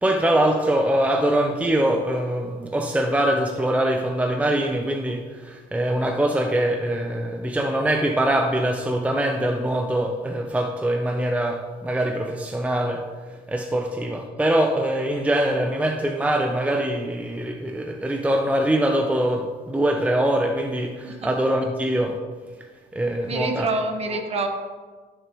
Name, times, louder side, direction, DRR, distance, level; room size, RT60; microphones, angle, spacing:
voice 1, 0.0-13.0 13.5-22.2 22.9-23.7, right 1 dB, 10° right, 3 dB, 0.7 m, -23 dB
voice 2, 23.3-24.5, right 2 dB, 35° right, 4 dB, 1.3 m, -26 dB
14.0 x 6.8 x 3.1 m, 1.4 s
cardioid pair, 110°, 17 cm